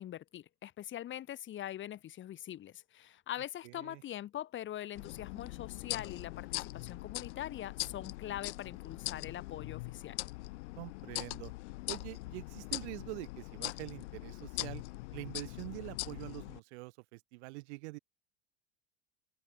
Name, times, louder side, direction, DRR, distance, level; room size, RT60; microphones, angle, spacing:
voice 1, 0.0-10.2, left 12 dB, 35° left, 6.8 m, -43 dB
voice 2, 3.6-4.0 10.8-11.5 11.9-14.8 15.1-18.0, right 24 dB, 75° right, 2.2 m, -45 dB
sound 1, 5.0-16.6, left 21 dB, 80° left, 2.8 m, -42 dB
supercardioid pair, 150°, 34 cm